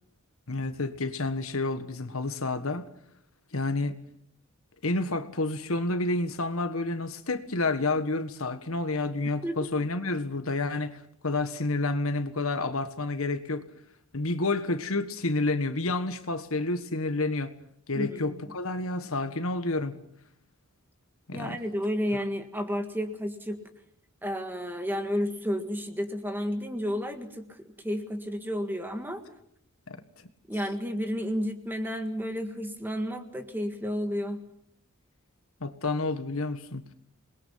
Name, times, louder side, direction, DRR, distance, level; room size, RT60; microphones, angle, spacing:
voice 1, 0.5-2.9 3.5-4.0 4.8-13.6 14.1-17.5 17.9-19.9 21.3-21.6 29.9-30.0 35.6-36.8, left 2 dB, 75° left, 1.6 m, -29 dB
voice 2, 17.9-18.4 21.3-23.6 24.2-29.2 30.5-34.4, equal, 10° right, 1.8 m, -31 dB
27.5 x 21.0 x 5.8 m
head